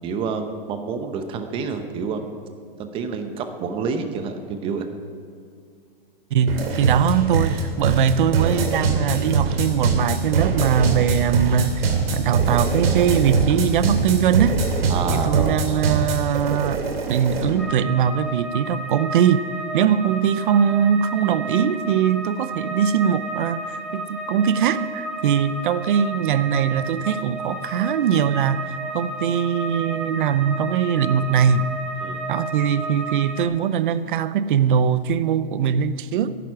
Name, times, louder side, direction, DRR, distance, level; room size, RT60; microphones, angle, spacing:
voice 1, 0.0-2.2 2.8-4.9 14.9-15.7 32.0-32.2, right 5 dB, 20° right, 0.9 m, -28 dB
voice 2, 6.3-14.6 15.1-19.5 19.7-31.7 32.3-36.4, right 8 dB, 60° right, 0.7 m, -21 dB
sound 1, 6.5-17.6, right 4 dB, 85° right, 2.7 m, -23 dB
sound 2, 17.6-33.4, right 2 dB, ahead, 1.1 m, -32 dB
14.0 x 11.0 x 5.9 m
hypercardioid pair, 160°, 29 cm